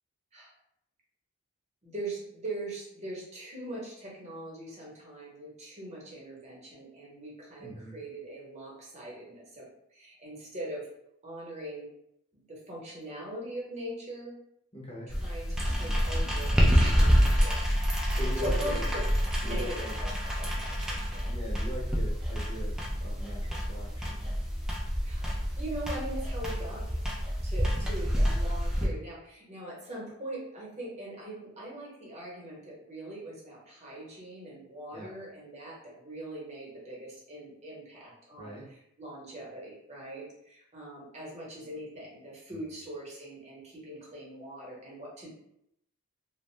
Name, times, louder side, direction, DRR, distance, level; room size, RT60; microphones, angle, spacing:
voice 1, 1.8-10.9 11.2-11.9 12.3-14.3 15.2-17.8 18.4-19.1 19.4-20.1 20.4-21.3 25.0-25.3 25.6-27.0 27.4-45.3, right 1 dB, 30° right, -4 dB, 0.9 m, -41 dB
voice 2, 7.6-7.9 14.7-15.1 18.1-18.8 19.4-19.9 21.2-24.4 27.6-27.9 34.9-35.1 38.4-38.6 42.5-42.7, equal, 25° left, -3 dB, 0.6 m, -41 dB
sound 1, 15.1-28.9, equal, 5° right, 0.3 m, -28 dB
2.5 x 2.1 x 3.1 m, 0.76 s
head